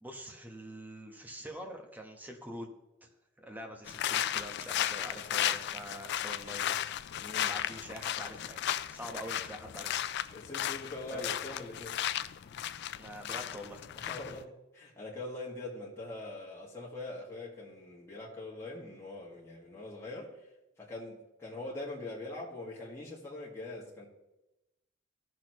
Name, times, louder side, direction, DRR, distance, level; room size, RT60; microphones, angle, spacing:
voice 1, 0.0-2.7 3.0-3.1 3.4-6.7 7.4-10.0 11.1-11.2 13.0-13.8, equal, 10° right, 1.2 m, -45 dB
sound 1, 3.9-14.4, left 11 dB, 60° left, 0.4 m, -35 dB
voice 2, 7.2-7.5 10.3-12.2 12.5-12.6 14.0-20.5 20.8-24.1, left 2 dB, 15° left, 2.0 m, -43 dB
15.5 x 6.3 x 3.1 m
head